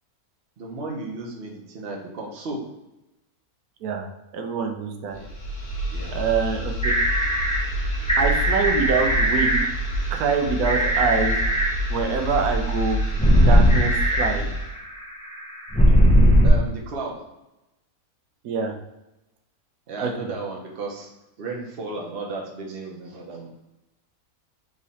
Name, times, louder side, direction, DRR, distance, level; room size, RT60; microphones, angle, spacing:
voice 1, 0.6-2.6 5.1-5.3 5.9-6.2 16.4-17.2 19.9-21.1 21.4-23.5, right 3 dB, 45° right, -1 dB, 1.0 m, -34 dB
voice 2, 4.3-5.2 6.1-6.9 8.2-9.6 10.1-11.4 11.9-13.0 13.4-14.5 18.4-18.7 20.0-20.3, right 5 dB, 75° right, 4 dB, 1.2 m, -25 dB
sound 1, 5.1-14.8, equal, 40° left, 1.1 m, -28 dB
sound 2, 6.8-16.5, equal, 5° left, 0.4 m, -19 dB
3.7 x 3.1 x 4.1 m, 0.95 s
omnidirectional pair, 1.6 m